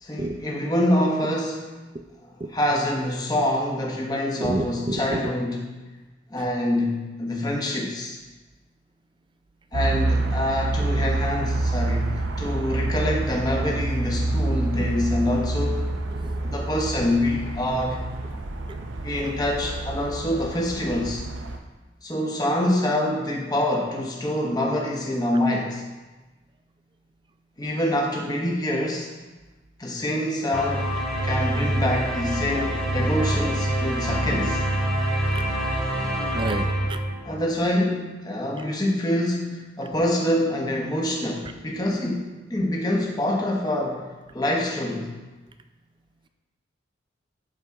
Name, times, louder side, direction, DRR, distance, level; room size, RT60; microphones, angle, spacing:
voice 1, 0.0-1.8 2.2-5.8 6.3-8.2 9.7-15.9 16.4-18.0 19.0-21.2 22.0-25.8 27.6-29.1 29.8-31.0 31.2-34.6 37.2-44.1 44.3-45.1, left 1 dB, 20° left, -1 dB, 1.0 m, -26 dB
voice 2, 4.4-5.2 16.2-16.3 35.3-35.4 36.3-37.0, right 2 dB, 25° right, 7 dB, 0.4 m, -29 dB
sound 1, 9.7-21.6, right 2 dB, 85° right, 0.7 m, -27 dB
sound 2, 30.5-37.6, right 1 dB, 5° left, 1.5 m, -26 dB
12.5 x 4.3 x 3.6 m, 1.2 s
head